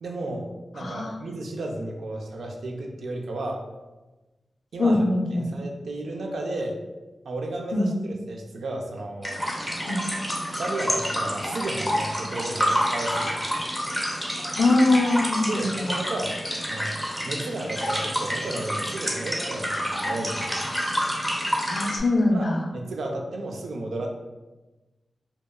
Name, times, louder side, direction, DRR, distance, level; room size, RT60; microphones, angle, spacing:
voice 1, 0.0-0.5 0.7-3.6 4.7-5.0 5.3-6.8 7.2-9.4 10.6-13.5 15.5-16.9 17.2-20.7 22.3-22.5 22.7-24.1, right 2 dB, 90° right, 1 dB, 0.4 m, -33 dB
voice 2, 0.8-1.2 4.8-5.5 7.7-7.9 9.9-10.1 14.6-16.0 21.7-22.7, left 2 dB, 60° left, 2 dB, 0.3 m, -22 dB
sound 1, 9.2-22.0, equal, ahead, 0.6 m, -28 dB
2.7 x 2.3 x 2.2 m, 1.1 s
wide cardioid pair, 110°, 0 cm